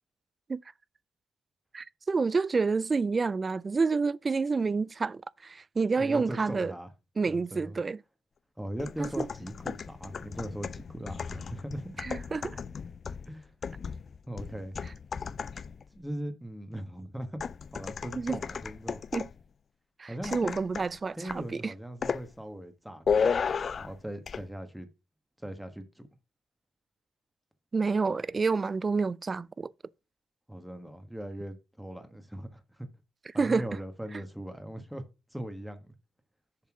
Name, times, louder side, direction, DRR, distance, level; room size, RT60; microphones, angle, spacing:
voice 1, 1.7-6.7 7.2-8.0 9.0-9.3 12.0-12.6 18.2-18.4 19.1-19.3 20.0-21.7 27.7-29.7 33.4-33.7, right 4 dB, 30° right, 0.3 m, -29 dB
voice 2, 6.0-6.9 7.3-7.8 8.6-12.0 13.3-13.5 14.3-14.8 15.9-17.4 17.7-19.0 20.1-20.6 21.2-23.3 23.8-24.9 25.4-26.1 30.5-32.9 33.3-35.0 35.3-35.9, right 1 dB, 5° right, 1.4 m, -39 dB
sound 1, 8.8-15.9 17.4-19.4 20.2-21.0 21.3-21.5 22.0-22.3 23.1-24.0 24.3-24.4, left 6 dB, 45° left, 0.4 m, -34 dB
7.2 x 4.2 x 6.1 m
cardioid pair, 90°, 0 cm